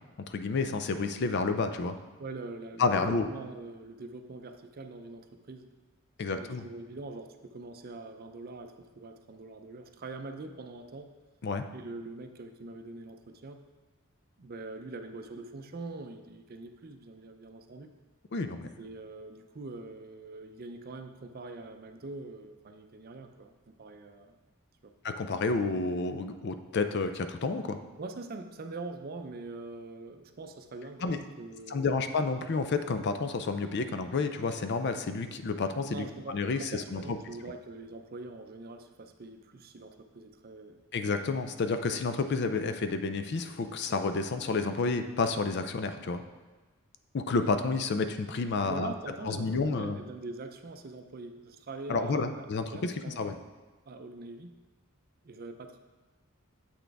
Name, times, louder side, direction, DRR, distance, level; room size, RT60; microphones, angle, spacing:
voice 1, 0.3-2.0 2.8-3.3 6.2-6.6 11.4-11.6 18.3-18.7 25.0-27.8 31.0-31.2 31.7-37.2 40.9-46.2 47.1-48.9 49.3-50.0 51.9-53.4, left 4 dB, 50° left, 9 dB, 0.4 m, -30 dB
voice 2, 2.2-5.7 6.4-11.1 11.7-13.6 14.4-17.9 18.8-24.4 24.8-24.9 28.0-32.0 35.8-36.3 36.6-40.8 48.7-52.5 52.7-53.4 53.9-54.5 55.2-55.8, right 3 dB, 45° right, 7 dB, 0.5 m, -43 dB
7.7 x 6.2 x 3.4 m, 1.3 s
head